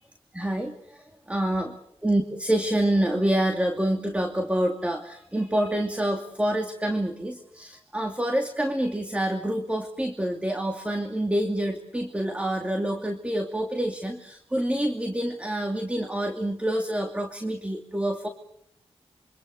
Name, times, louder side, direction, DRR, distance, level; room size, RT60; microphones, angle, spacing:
voice 1, 0.3-1.7 2.0-18.3, right 1 dB, 10° right, 4 dB, 2.5 m, -27 dB
27.0 x 25.0 x 6.8 m, 0.71 s
cardioid pair, 75°, 11 cm